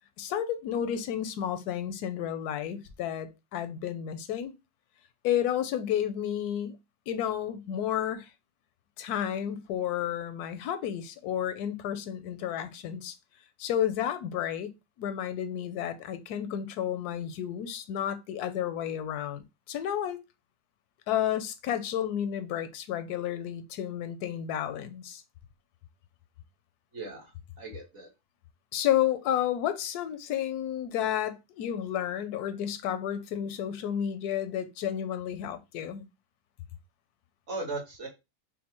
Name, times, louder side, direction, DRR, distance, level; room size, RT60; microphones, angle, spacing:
voice 1, 0.2-4.5 5.2-6.8 7.1-8.3 9.0-13.1 13.6-20.2 21.1-25.2 28.7-36.1, left 10 dB, 85° left, 1.1 m, -31 dB
voice 2, 26.9-28.1 37.5-38.1, right 3 dB, 50° right, 1.6 m, -38 dB
5.2 x 2.1 x 2.9 m
omnidirectional pair, 1.6 m